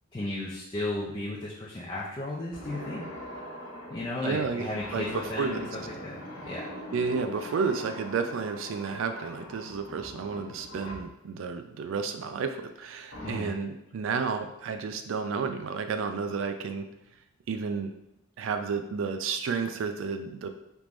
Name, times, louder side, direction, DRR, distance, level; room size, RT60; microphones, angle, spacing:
voice 1, 0.1-3.0 3.9-6.7 13.2-13.5, left 1 dB, 25° left, -6 dB, 0.4 m, -34 dB
sound 1, 2.5-11.2 13.1-13.4, equal, 85° left, 0.9 m, -42 dB
voice 2, 4.2-5.7 6.9-16.9 17.5-17.9 18.4-20.5, right 5 dB, 65° right, 8 dB, 0.3 m, -31 dB
3.5 x 3.0 x 2.5 m, 0.88 s
head